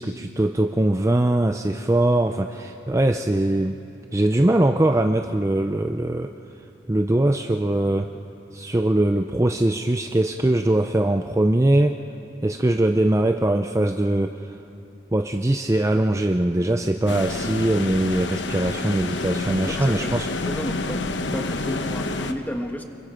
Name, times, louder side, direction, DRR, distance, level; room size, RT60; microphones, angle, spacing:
voice 1, 0.0-3.8 4.1-6.3 6.9-8.1 8.5-12.0 12.4-14.6 15.1-20.3, right 1 dB, 15° right, 6 dB, 0.5 m, -21 dB
sound 1, 17.1-22.3, left 2 dB, 80° left, 1.1 m, -28 dB
voice 2, 19.6-21.0 21.3-22.8, equal, 10° left, 4 dB, 1.3 m, -32 dB
29.0 x 22.5 x 5.1 m, 2.7 s
head